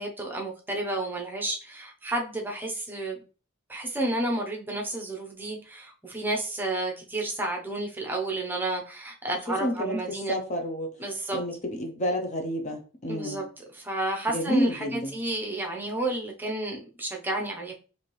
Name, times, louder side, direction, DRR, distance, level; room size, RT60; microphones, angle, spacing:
voice 1, 0.0-3.2 3.7-10.4 11.0-11.4 13.1-17.7, right 2 dB, 10° right, 0.7 m, -31 dB
voice 2, 9.6-11.0 11.3-13.4 14.3-15.1, equal, 35° left, 0.6 m, -29 dB
4.3 x 2.6 x 3.0 m
head